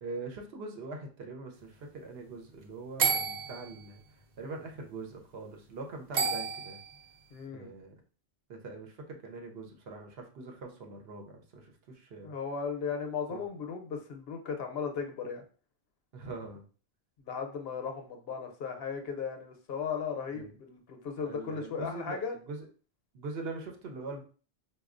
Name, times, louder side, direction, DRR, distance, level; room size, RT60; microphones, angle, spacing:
voice 1, 0.0-4.0 4.4-6.8 7.5-7.9 8.5-12.3 13.3-13.4 16.1-16.6 20.3-20.6 21.2-22.2 22.5-22.7 23.1-24.2, right 3 dB, 75° right, 3 dB, 0.9 m, -42 dB
sound 1, 3.0-3.9 6.1-7.0, right 5 dB, 50° right, 0.6 m, -30 dB
voice 2, 7.3-7.7 12.2-15.4 17.2-22.4, left 6 dB, 70° left, 5 dB, 0.8 m, -36 dB
4.2 x 2.3 x 2.4 m, 0.39 s
omnidirectional pair, 1.0 m